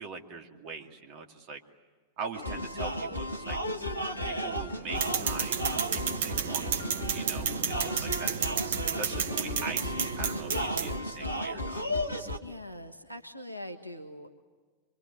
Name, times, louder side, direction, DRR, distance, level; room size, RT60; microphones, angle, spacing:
voice 1, 0.0-1.6 2.2-3.6 4.2-5.6 5.9-8.7 9.0-11.8, right 5 dB, 40° right, 3 dB, 2.6 m, -42 dB
sound 1, 2.3-12.4, equal, 85° left, 1.4 m, -34 dB
sound 2, 5.0-11.0, right 7 dB, 60° right, 1.4 m, -32 dB
voice 2, 12.4-14.3, left 1 dB, 90° right, 5 dB, 1.4 m, -42 dB
25.0 x 24.5 x 9.4 m, 1.5 s
figure-of-eight pair, 90°, 0 cm